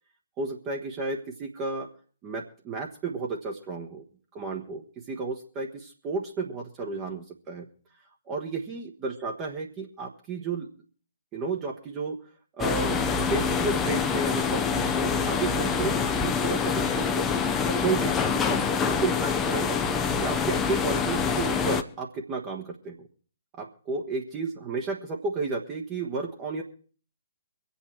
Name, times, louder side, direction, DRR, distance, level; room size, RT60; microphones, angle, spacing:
voice 1, 0.4-1.9 2.2-4.0 4.3-7.7 8.3-10.7 11.3-12.2 12.6-17.3 17.7-19.8 20.2-23.1 23.6-26.6, right 4 dB, 25° right, 1 dB, 1.3 m, -32 dB
sound 1, 12.6-21.8, left 6 dB, 15° left, 0.7 m, -26 dB
24.5 x 8.4 x 4.6 m, 0.43 s
figure-of-eight pair, 125°, 0 cm